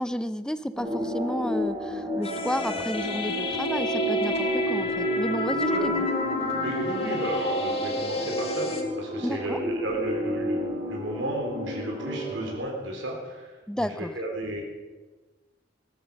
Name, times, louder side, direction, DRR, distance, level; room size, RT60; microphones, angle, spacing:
voice 1, 0.0-5.9 9.2-9.6 13.7-14.1, equal, 5° left, 13 dB, 0.5 m, -31 dB
sound 1, 0.8-12.5, equal, 25° right, 2.7 m, -31 dB
sound 2, 2.2-8.8, left 1 dB, 35° left, 2.0 m, -30 dB
voice 2, 6.6-14.6, right 1 dB, 80° right, 0 dB, 3.6 m, -34 dB
17.0 x 12.5 x 5.3 m, 1.2 s
head